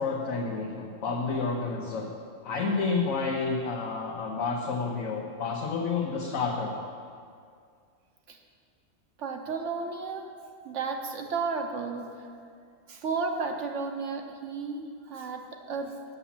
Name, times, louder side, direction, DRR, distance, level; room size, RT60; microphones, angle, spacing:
voice 1, 0.0-2.1 2.4-6.8, left 4 dB, 85° left, -1 dB, 1.3 m, -30 dB
voice 2, 9.2-10.3 10.6-12.2 12.9-16.0, right 4 dB, 65° right, 4 dB, 1.1 m, -33 dB
8.4 x 7.0 x 7.3 m, 2.2 s
omnidirectional pair, 1.4 m